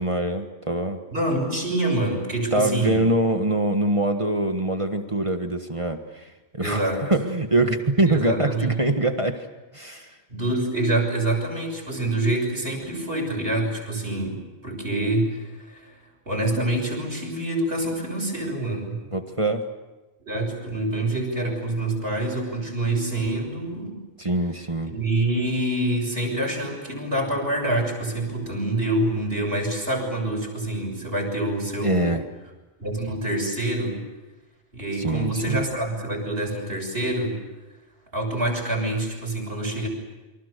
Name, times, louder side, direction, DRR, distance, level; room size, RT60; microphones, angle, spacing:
voice 1, 0.0-1.0 2.5-6.3 6.5-9.4 9.7-10.1 19.1-19.6 24.2-24.9 31.8-32.2 35.0-35.6, right 2 dB, 30° right, 6 dB, 1.6 m, -24 dB
voice 2, 1.1-3.1 6.6-7.0 8.1-8.7 10.3-16.0 16.3-19.0 20.2-24.0 24.8-32.1 32.8-34.0 34.7-37.4 38.1-39.9, right 1 dB, 60° right, 1 dB, 7.0 m, -26 dB
28.5 x 24.5 x 6.8 m, 1.1 s
omnidirectional pair, 1.1 m